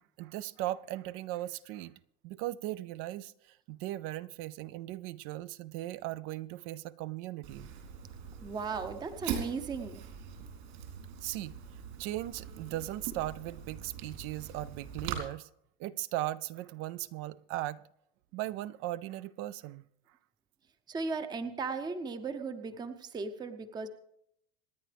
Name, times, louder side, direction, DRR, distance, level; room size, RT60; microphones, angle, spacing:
voice 1, 0.0-1.9 2.2-7.7 11.2-11.6 12.0-15.5 15.8-17.8 18.3-19.8, right 15 dB, 45° right, 0.4 m, -38 dB
Fire, 7.4-15.2, right 8 dB, 65° right, 3.8 m, -42 dB
voice 2, 8.4-10.0 20.9-23.9, right 4 dB, 15° right, 0.7 m, -36 dB
26.5 x 9.9 x 3.4 m
supercardioid pair, 155°, 32 cm